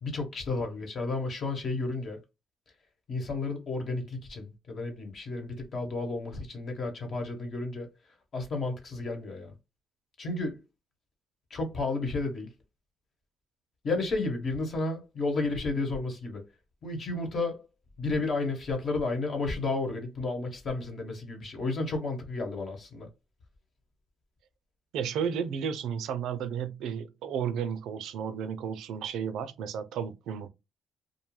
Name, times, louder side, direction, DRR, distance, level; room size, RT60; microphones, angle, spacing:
voice 1, 0.0-2.2 3.1-7.9 8.3-9.5 10.2-10.6 11.5-12.5 13.8-16.4 16.8-17.6 18.0-23.1, left 3 dB, 50° left, 1.1 m, -32 dB
voice 2, 24.9-30.5, right 7 dB, 85° right, 0.4 m, -33 dB
2.5 x 2.2 x 3.1 m
cardioid pair, 90°, 0 cm